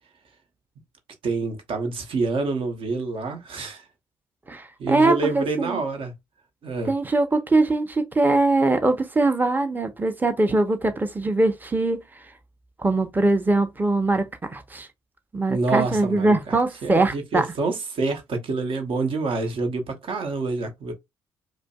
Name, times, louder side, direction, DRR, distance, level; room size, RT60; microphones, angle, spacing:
voice 1, 1.2-3.8 4.8-6.1 6.6-6.9 15.5-20.9, right 3 dB, 60° right, 1.0 m, -27 dB
voice 2, 4.5-5.8 6.8-12.0 12.8-14.3 14.5-14.9 15.3-17.4, right 2 dB, 20° right, 0.8 m, -22 dB
4.9 x 2.0 x 2.4 m
hypercardioid pair, 50°, 10 cm